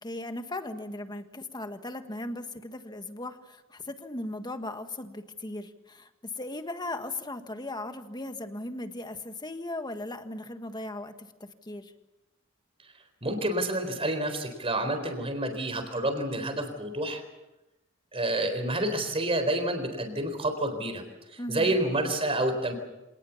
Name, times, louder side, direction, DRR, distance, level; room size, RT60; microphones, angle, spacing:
voice 1, 0.0-11.9 21.4-21.8, left 2 dB, 20° left, 8 dB, 1.6 m, -37 dB
voice 2, 13.2-17.2 18.1-21.0 21.3-22.7, right 1 dB, 30° right, 7 dB, 4.0 m, -29 dB
26.0 x 19.5 x 7.2 m, 1.0 s
head